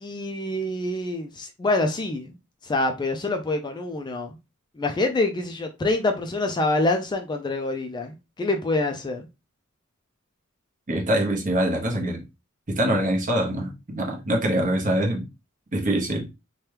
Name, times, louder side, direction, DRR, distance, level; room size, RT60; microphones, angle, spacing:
voice 1, 0.0-2.3 2.6-4.4 4.8-9.3, left 2 dB, 20° left, 0.3 m, -26 dB
voice 2, 10.9-12.2 12.7-15.3 15.7-16.3, right 1 dB, 40° right, 0.9 m, -24 dB
2.9 x 2.2 x 3.3 m
head